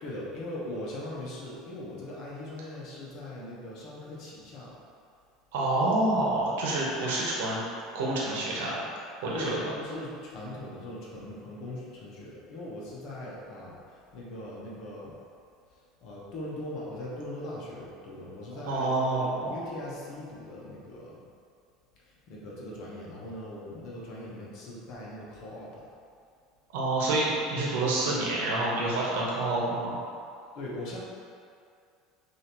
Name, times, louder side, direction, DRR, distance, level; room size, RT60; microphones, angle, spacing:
voice 1, 0.0-4.8 9.3-13.8 14.1-15.1 16.0-21.2 22.3-25.7 30.5-31.0, left 1 dB, 60° left, -5 dB, 1.1 m, -40 dB
voice 2, 5.5-7.6 7.9-8.8 9.2-9.6 18.5-19.5 26.7-30.0, right 2 dB, 85° right, -5 dB, 1.1 m, -28 dB
6.1 x 2.8 x 3.0 m, 2.4 s
supercardioid pair, 110°, 0 cm